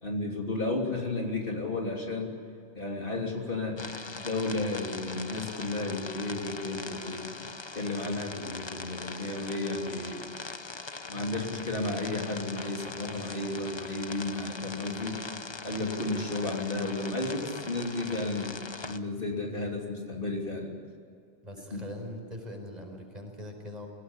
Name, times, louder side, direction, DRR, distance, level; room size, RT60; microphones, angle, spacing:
voice 1, 0.0-2.3 2.7-7.3 7.7-10.3 11.1-15.2 15.6-20.7 21.7-21.9, left 2 dB, 50° left, 0 dB, 3.4 m, -33 dB
sound 1, 3.8-19.0, left 3 dB, 25° left, 0.8 m, -41 dB
voice 2, 21.4-23.9, left 1 dB, 35° right, 2 dB, 5.1 m, -42 dB
24.5 x 18.5 x 9.8 m, 2.3 s
omnidirectional pair, 1.2 m